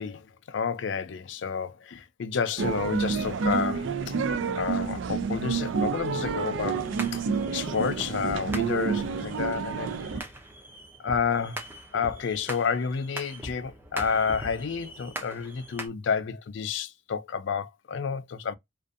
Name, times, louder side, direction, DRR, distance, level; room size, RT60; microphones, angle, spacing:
voice 1, 0.0-4.2 4.6-6.8 7.1-7.2 7.5-9.9 11.0-11.6 11.9-18.6, left 6 dB, 70° left, 0.4 m, -30 dB
sound 1, 2.6-10.2, right 5 dB, 70° right, 0.4 m, -29 dB
sound 2, 6.7-15.9, right 1 dB, 10° right, 0.5 m, -41 dB
2.6 x 2.3 x 2.3 m
head